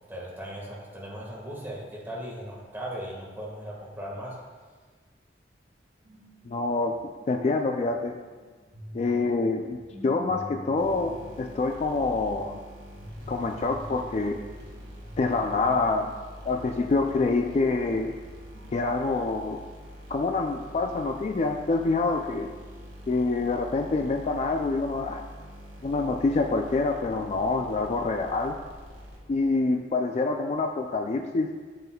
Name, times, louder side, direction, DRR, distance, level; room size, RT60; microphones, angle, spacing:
voice 1, 0.1-4.4, equal, 10° right, -4 dB, 1.5 m, -38 dB
sound 1, 6.0-16.5 17.0-19.0, left 1 dB, 55° right, 2.0 m, -47 dB
voice 2, 6.5-6.9 7.3-8.2 8.9-9.8 10.0-12.6 13.3-14.4 15.2-16.1 16.5-18.1 18.7-19.6 20.1-22.5 23.1-25.2 25.8-28.6 29.3-31.5, left 3 dB, 40° left, 4 dB, 0.3 m, -26 dB
sound 2, 10.8-29.5, equal, 80° right, 1.9 m, -45 dB
7.7 x 7.1 x 2.3 m, 1.5 s
head